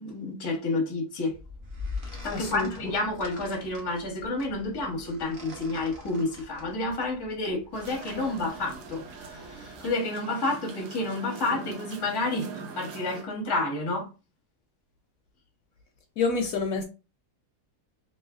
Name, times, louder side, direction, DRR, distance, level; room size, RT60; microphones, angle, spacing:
voice 1, 0.0-1.3 2.2-14.1, left 2 dB, 25° left, 0.6 m, -30 dB
sound 1, 1.3-9.9, left 3 dB, 40° right, 0.9 m, -44 dB
voice 2, 2.3-2.7 16.2-16.8, left 4 dB, 70° left, 0.9 m, -27 dB
sound 2, 7.7-13.2, right 5 dB, 90° right, 1.3 m, -43 dB
3.1 x 2.9 x 2.3 m
omnidirectional pair, 1.7 m